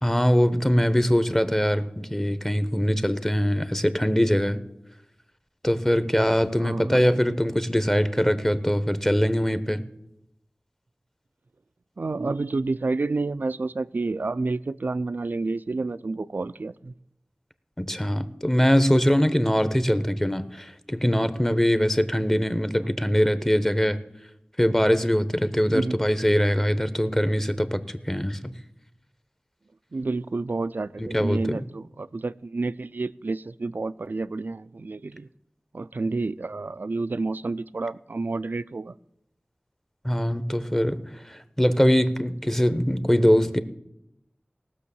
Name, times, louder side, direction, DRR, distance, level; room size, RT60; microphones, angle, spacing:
voice 1, 0.0-4.6 5.6-9.8 17.8-24.0 24.6-28.5 31.0-31.6 40.0-43.6, equal, 10° left, 13 dB, 0.9 m, -22 dB
voice 2, 6.6-7.2 12.0-16.9 25.7-26.0 29.9-35.3 35.7-39.0, right 3 dB, 70° right, 16 dB, 0.4 m, -29 dB
18.0 x 6.5 x 7.0 m, 0.82 s
wide cardioid pair, 45°, 3 cm